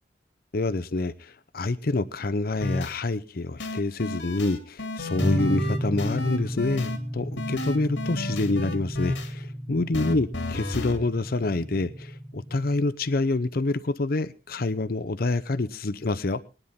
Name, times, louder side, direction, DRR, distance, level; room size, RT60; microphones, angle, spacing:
voice 1, 0.5-16.4, left 2 dB, 55° left, 0.7 m, -27 dB
sound 1, 2.6-2.9 3.6-7.0 7.4-9.3 9.9-11.0, left 2 dB, 85° left, 2.6 m, -32 dB
sound 2, 5.2-12.8, equal, 5° right, 0.9 m, -33 dB
22.5 x 10.0 x 3.6 m
head